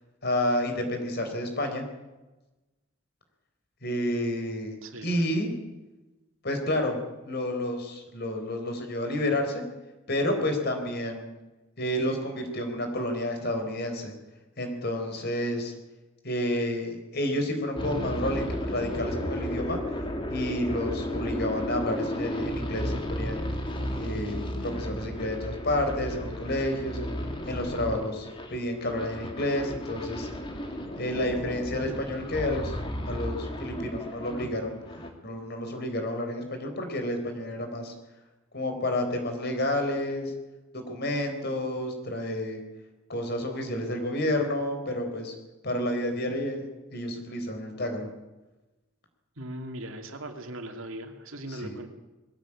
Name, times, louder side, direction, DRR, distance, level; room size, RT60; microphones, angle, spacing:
voice 1, 0.2-1.8 3.8-4.8 5.0-5.5 6.4-7.0 7.2-9.6 10.1-11.3 11.8-14.1 14.6-15.7 16.2-19.8 20.3-23.4 24.0-27.1 27.5-30.3 31.0-32.8 33.1-34.8 35.2-37.9 38.5-40.3 40.7-42.6 43.1-45.3 45.6-46.6 46.9-48.1 51.5-51.8, left 1 dB, 50° left, 5 dB, 4.1 m, -30 dB
voice 2, 4.8-5.1 49.4-51.9, right 1 dB, 70° right, 5 dB, 2.7 m, -39 dB
sound 1, 17.8-34.5 34.8-35.1, equal, 25° left, 2.6 m, -34 dB
21.5 x 16.5 x 8.7 m, 1.1 s
head